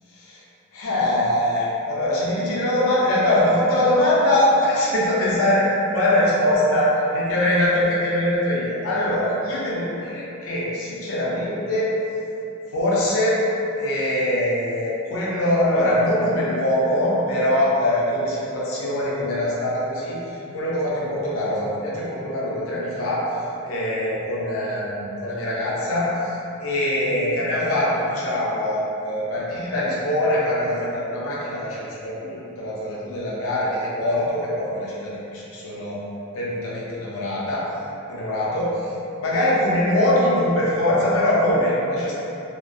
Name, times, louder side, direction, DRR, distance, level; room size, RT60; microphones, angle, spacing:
voice 1, 0.7-12.0 12.7-13.4 13.8-36.0 36.3-37.7 38.1-38.9 39.2-42.2, left 1 dB, 70° left, -7 dB, 0.5 m, -22 dB
2.3 x 2.2 x 2.5 m, 2.9 s
head